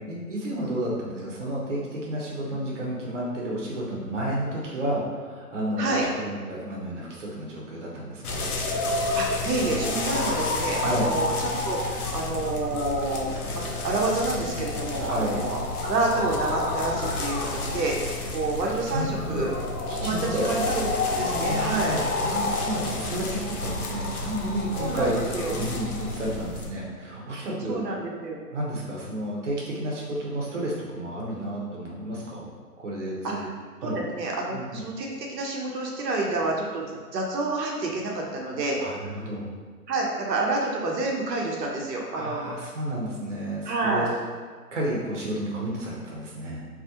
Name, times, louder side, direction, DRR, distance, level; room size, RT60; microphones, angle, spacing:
voice 1, 0.0-8.5 10.8-11.1 14.9-15.5 18.9-19.5 19.9-20.5 21.2-27.9 28.5-32.5 32.8-33.4 33.8-34.0 34.5-34.8 38.8-39.5 42.1-44.1 44.7-46.7, right 1 dB, 50° right, -4 dB, 0.6 m, -31 dB
voice 2, 5.8-6.1 8.9-18.0 18.3-19.5 20.0-22.0 24.8-25.6 27.7-28.4 33.2-33.5 33.8-36.9 37.1-38.8 39.9-42.5 43.7-44.1, right 2 dB, 85° right, -1 dB, 0.7 m, -28 dB
sound 1, 8.2-26.7, left 2 dB, 70° left, 0.5 m, -30 dB
2.3 x 2.0 x 2.7 m, 1.5 s
hypercardioid pair, 160°, 48 cm